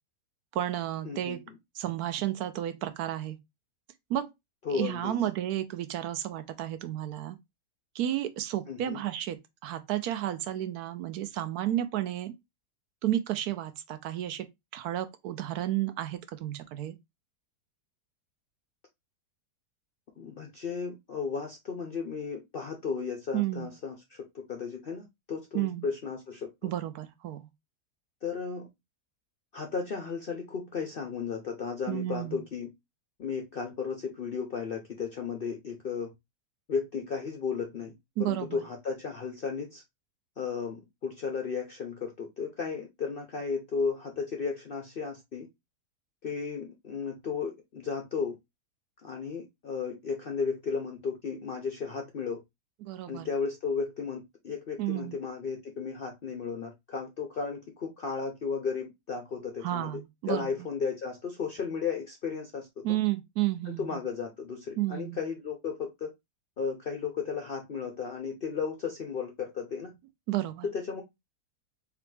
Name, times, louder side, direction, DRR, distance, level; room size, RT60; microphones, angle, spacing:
voice 1, 0.5-1.4 1.8-3.4 4.1-4.3 4.7-7.4 7.9-12.3 13.0-14.5 14.7-17.0 23.3-23.7 25.5-25.9 26.6-27.5 31.9-32.4 38.2-38.6 52.8-53.3 54.8-55.2 59.6-60.5 62.8-64.0 64.8-65.2 70.3-70.7, right 13 dB, 75° right, 1.1 m, -32 dB
voice 2, 1.0-1.4 4.6-5.1 8.7-9.0 20.2-26.7 28.2-28.7 29.5-32.7 33.2-36.1 36.7-37.9 38.2-39.8 40.4-45.5 46.2-48.4 49.0-52.4 53.1-60.0 60.3-62.9 63.8-66.1 66.6-69.9 70.6-71.0, left 5 dB, 60° left, 0.6 m, -34 dB
3.9 x 3.3 x 3.2 m
omnidirectional pair, 1.7 m